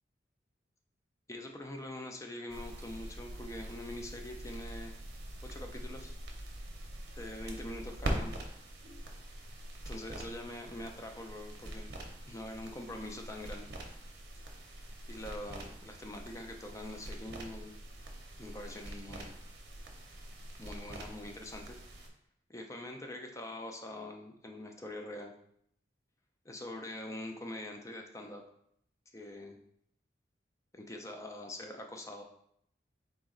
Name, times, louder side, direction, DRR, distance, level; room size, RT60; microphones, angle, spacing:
voice 1, 1.3-5.0 5.4-6.2 7.1-8.4 9.8-11.9 12.3-13.7 15.1-17.7 18.4-19.3 20.6-21.8 22.5-25.3 26.4-28.4 29.1-29.6 30.7-32.2, left 1 dB, 15° left, 3 dB, 0.4 m, -44 dB
sound 1, 2.5-22.1, right 1 dB, 60° right, 0.7 m, -44 dB
4.0 x 2.9 x 3.7 m, 0.71 s
head